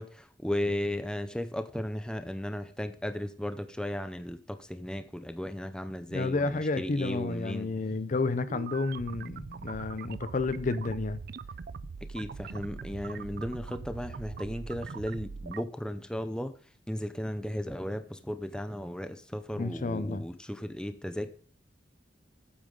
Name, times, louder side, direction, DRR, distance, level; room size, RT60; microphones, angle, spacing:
voice 1, 0.0-7.7 12.1-16.5 16.9-21.3, left 1 dB, 5° left, 0.6 m, -35 dB
voice 2, 6.1-11.2 19.6-20.2, left 3 dB, 45° left, 0.6 m, -31 dB
sound 1, 8.5-15.6, right 5 dB, 60° right, 0.4 m, -42 dB
8.9 x 8.5 x 3.9 m
head